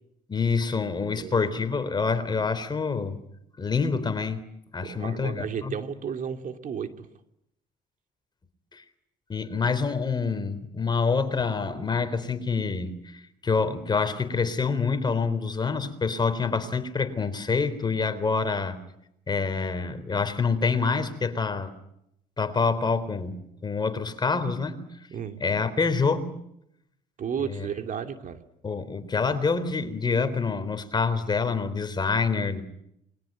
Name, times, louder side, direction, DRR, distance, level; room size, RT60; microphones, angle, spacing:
voice 1, 0.3-3.2 3.6-4.4 4.7-5.7 8.7-8.8 9.3-18.8 19.3-21.7 22.4-24.8 25.4-26.3 27.4-27.7 28.6-32.6, left 4 dB, 25° left, 10 dB, 3.7 m, -26 dB
voice 2, 4.8-7.1 25.1-25.4 27.2-28.4, right 7 dB, 50° right, 6 dB, 2.7 m, -33 dB
28.5 x 22.5 x 9.1 m, 0.79 s
cardioid pair, 110°, 17 cm